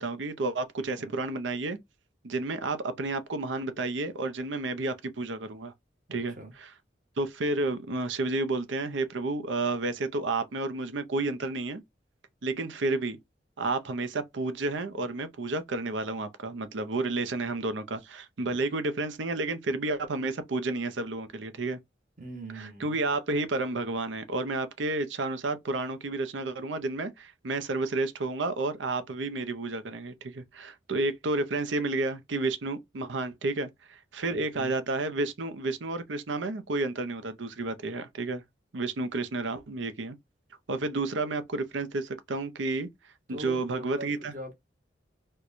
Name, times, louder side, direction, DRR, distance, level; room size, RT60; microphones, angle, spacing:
voice 1, 0.0-1.8 2.2-5.7 6.1-6.3 7.2-11.8 12.4-13.2 13.6-21.8 22.6-38.4 38.7-40.2 40.7-42.9 43.3-44.3, right 2 dB, 90° right, 0.6 m, -31 dB
voice 2, 0.8-1.1 6.1-6.5 22.2-23.0 34.3-34.7 43.3-44.5, right 1 dB, 45° right, 1.1 m, -42 dB
4.5 x 2.2 x 2.5 m
head